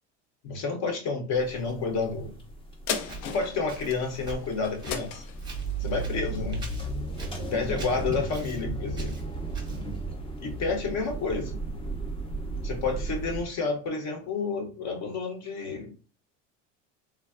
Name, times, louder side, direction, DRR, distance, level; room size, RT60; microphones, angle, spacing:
voice 1, 0.4-2.4 3.3-5.2 5.8-6.6 7.5-9.2 10.4-11.5 12.6-15.9, left 4 dB, 45° left, 0.7 m, -30 dB
sound 1, 1.3-13.4, right 2 dB, 15° left, 0.4 m, -35 dB
sound 2, 2.9-7.6 8.1-8.2, left 6 dB, 80° left, 0.6 m, -38 dB
Walk footsteps, 3.0-10.0, right 4 dB, 10° right, 0.7 m, -43 dB
3.3 x 2.2 x 2.4 m
supercardioid pair, 120°, 38 cm